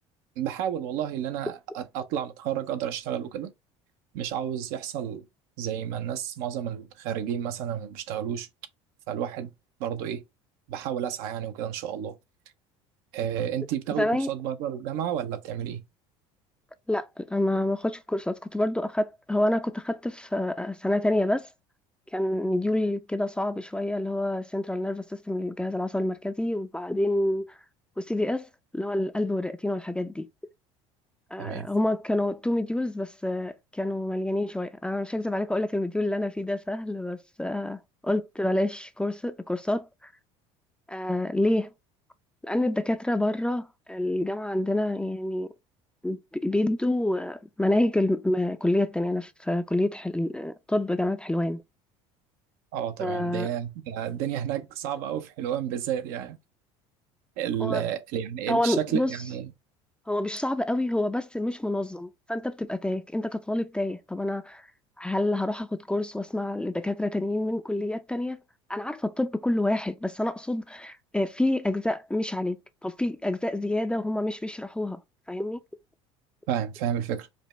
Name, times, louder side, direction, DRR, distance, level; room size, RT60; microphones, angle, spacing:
voice 1, 0.4-3.5 4.1-5.2 5.6-8.5 9.1-9.5 9.8-10.2 10.7-12.1 13.1-15.8 31.4-31.7 52.7-56.4 57.4-59.5 76.5-77.3, right 9 dB, 70° right, 0.7 m, -31 dB
voice 2, 14.0-14.3 16.9-21.5 22.1-27.4 28.0-28.5 28.7-30.3 31.3-39.9 40.9-41.7 42.4-45.5 46.0-51.6 53.0-53.5 57.6-57.8 58.5-59.1 60.1-64.6 65.0-68.4 68.7-75.0 75.3-75.6, left 1 dB, 5° left, 0.5 m, -28 dB
5.1 x 2.1 x 3.1 m
hypercardioid pair, 80°, 16 cm